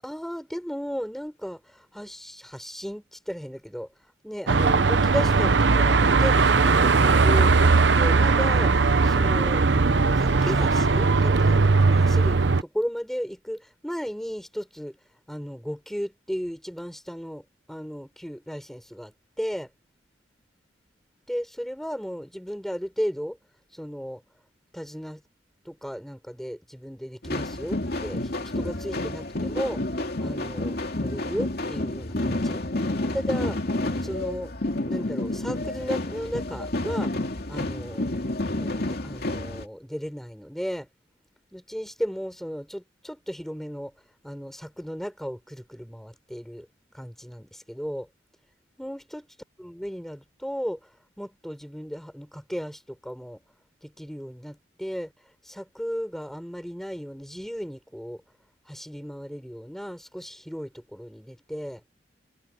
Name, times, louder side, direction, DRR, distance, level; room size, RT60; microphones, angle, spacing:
voice 1, 0.0-3.9 4.2-9.7 10.1-15.0 15.3-19.1 19.4-19.7 21.3-23.4 23.7-24.2 24.7-25.2 25.7-29.8 30.2-32.6 33.1-33.6 34.0-34.5 34.9-37.1 37.5-38.1 38.5-40.9 41.5-43.9 44.2-46.7 46.9-48.1 48.8-49.3 49.6-50.9 51.2-53.4 53.8-55.1 55.4-58.2 58.7-61.8, equal, ahead, 6.9 m, -35 dB
Car passing by / Traffic noise roadway noise / Engine, 4.5-12.6, right 4 dB, 75° right, 0.8 m, -19 dB
sound 1, 27.2-39.6, left 1 dB, 60° left, 2.6 m, -29 dB
head